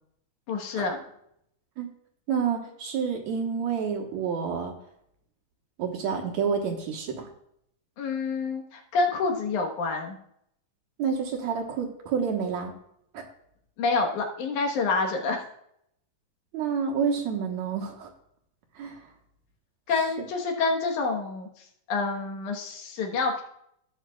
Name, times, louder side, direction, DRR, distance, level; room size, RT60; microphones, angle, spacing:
voice 1, 0.5-0.9 8.0-10.2 13.8-15.4 19.9-21.5 21.9-23.4, left 4 dB, 70° left, 2 dB, 2.6 m, -27 dB
voice 2, 2.3-4.7 5.8-7.3 11.0-12.7 13.1-13.2 16.5-18.1 18.8-19.0, right 6 dB, 65° right, 2 dB, 2.4 m, -29 dB
19.0 x 6.5 x 2.3 m, 0.73 s
omnidirectional pair, 3.7 m